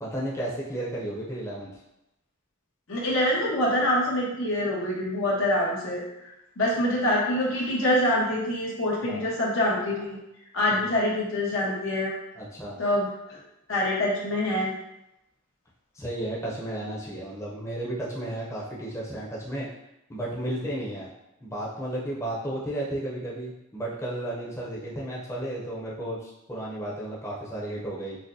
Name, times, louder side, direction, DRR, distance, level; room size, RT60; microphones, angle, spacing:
voice 1, 0.0-1.7 9.0-9.3 10.8-10.9 12.4-12.8 15.9-19.7 20.1-21.1 21.4-28.2, right 1 dB, 15° left, -6 dB, 0.7 m, -33 dB
voice 2, 2.9-6.0 6.6-10.2 10.5-12.1 12.8-13.4 13.7-14.7, left 1 dB, 80° left, -5 dB, 1.1 m, -25 dB
6.0 x 2.2 x 2.7 m, 0.88 s
head